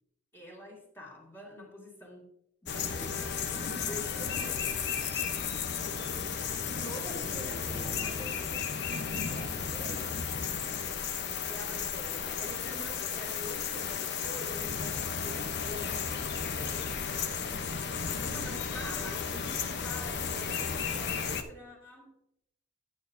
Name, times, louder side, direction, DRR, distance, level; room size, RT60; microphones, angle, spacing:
voice 1, 0.3-2.3 2.6-3.2 3.5-4.7 6.8-8.2 11.5-17.0 17.9-22.1, left 1 dB, 10° left, -3 dB, 2.2 m, -46 dB
sound 1, 2.7-21.4, left 6 dB, 55° left, 0.8 m, -34 dB
voice 2, 6.7-10.1, right 1 dB, 20° right, -6 dB, 1.5 m, -48 dB
9.7 x 8.7 x 2.7 m, 0.78 s
head